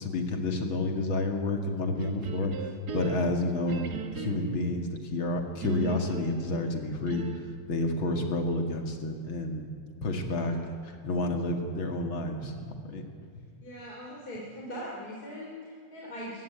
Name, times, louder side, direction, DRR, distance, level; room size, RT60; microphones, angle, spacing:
voice 1, 0.0-2.5 2.9-3.8 4.2-7.3 7.7-9.7 10.0-10.5 10.8-13.1, left 2 dB, 80° left, 4 dB, 3.0 m, -30 dB
sound 1, 2.0-4.7 5.6-7.6, right 4 dB, 55° right, 1.9 m, -38 dB
voice 2, 10.3-10.7 13.6-16.4, equal, 50° left, -4 dB, 3.7 m, -41 dB
23.5 x 15.0 x 9.4 m, 2.1 s
omnidirectional pair, 2.2 m